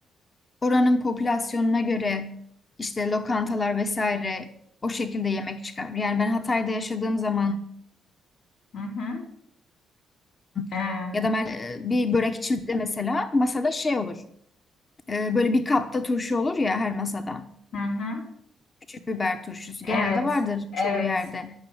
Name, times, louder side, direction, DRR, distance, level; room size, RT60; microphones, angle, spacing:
voice 1, 0.6-2.3 2.8-4.5 4.8-7.6 10.6-10.7 11.1-14.2 15.1-17.5 18.9-21.5, left 3 dB, 30° left, 8 dB, 1.1 m, -26 dB
voice 2, 8.7-9.2 10.7-11.2 17.7-18.3 19.8-20.2 20.7-21.1, left 3 dB, 75° left, 0 dB, 4.2 m, -28 dB
12.5 x 6.3 x 9.2 m, 0.70 s
cardioid pair, 90°, 0 cm